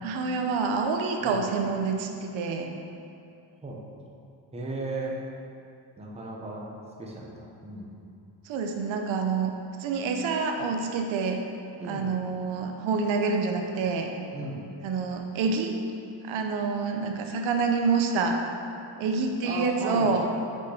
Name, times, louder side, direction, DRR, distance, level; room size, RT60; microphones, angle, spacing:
voice 1, 0.0-2.7 8.5-9.5 9.8-11.4 11.9-14.1 14.8-15.7 16.2-18.4 19.0-20.2, right 4 dB, 75° right, 3 dB, 0.8 m, -27 dB
voice 2, 4.5-5.2 6.0-6.6 7.0-7.9 11.8-12.1 14.3-14.6 19.4-20.2, right 2 dB, 15° right, -3 dB, 0.8 m, -35 dB
6.4 x 5.7 x 4.9 m, 2.5 s
cardioid pair, 170°, 47 cm